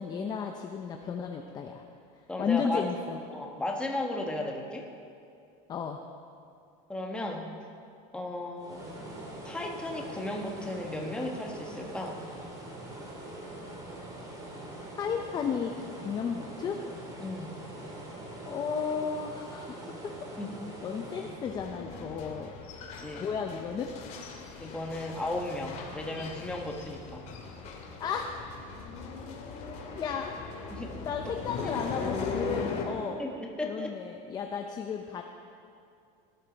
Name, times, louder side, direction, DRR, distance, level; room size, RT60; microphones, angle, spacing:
voice 1, 0.0-1.8 2.4-3.2 5.7-6.0 15.0-15.7 16.0-16.8 18.4-19.9 20.8-22.5 23.0-23.9 28.0-28.3 30.0-30.3 31.1-33.2 33.6-35.2, left 6 dB, 20° left, 3 dB, 0.6 m, -33 dB
voice 2, 2.3-2.9 3.3-4.9 6.9-7.6 8.1-8.8 9.4-12.2 17.2-17.6 20.4-20.5 23.0-23.3 24.6-27.2 30.7-30.9 31.6-31.7 33.2-33.9, left 2 dB, 5° left, 0 dB, 1.2 m, -35 dB
sound 1, 8.6-21.5, right 1 dB, 20° right, 2.3 m, -43 dB
sound 2, 21.4-32.8, left 5 dB, 40° left, 2.2 m, -39 dB
18.0 x 11.0 x 4.0 m, 2.5 s
cardioid pair, 160°, 18 cm